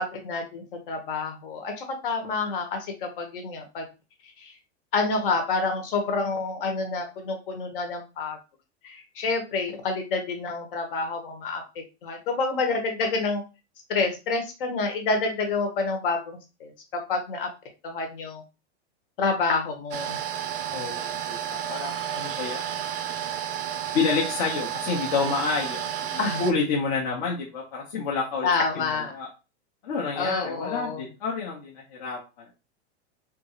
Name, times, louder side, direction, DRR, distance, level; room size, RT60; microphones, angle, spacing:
voice 1, 0.0-3.8 4.4-4.5 4.9-8.4 8.8-11.6 12.0-13.4 13.9-17.5 17.8-18.4 19.2-20.2 26.2-26.4 28.4-29.1 30.2-31.0, left 4 dB, 55° left, 3 dB, 1.0 m, -28 dB
sound 1, 19.9-26.5, right 9 dB, 55° right, 0.5 m, -31 dB
voice 2, 20.7-22.8 23.9-25.8 26.1-28.5 28.7-29.3 29.8-32.5, left 4 dB, 35° left, -2 dB, 0.7 m, -29 dB
3.6 x 2.4 x 2.9 m, 0.29 s
supercardioid pair, 175°, 34 cm